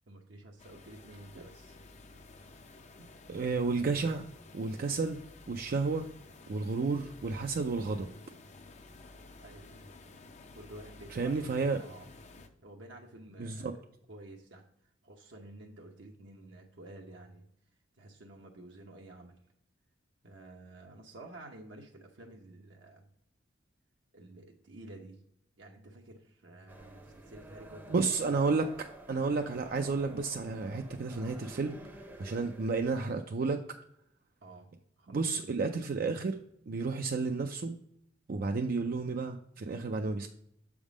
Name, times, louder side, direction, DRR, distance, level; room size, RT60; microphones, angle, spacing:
voice 1, 0.1-1.7 9.4-9.8 10.5-12.1 12.6-13.7 14.1-14.6 15.0-17.4 18.0-19.3 20.2-23.1 24.1-25.2 25.6-28.4 32.3-32.7 34.4-34.7 35.0-35.5, right 2 dB, 65° right, 0 dB, 0.8 m, -51 dB
sound 1, 0.6-12.5, left 2 dB, 35° left, 0.5 m, -53 dB
voice 2, 3.3-4.2 4.5-5.2 5.5-6.1 6.5-8.1 11.1-11.8 13.4-13.8 27.9-31.8 32.2-33.6 35.1-36.4 36.7-37.8 38.3-40.3, right 4 dB, 50° right, 4 dB, 0.4 m, -31 dB
sound 2, 26.7-33.0, right 1 dB, 10° right, 0.6 m, -51 dB
7.2 x 3.6 x 4.9 m, 0.72 s
head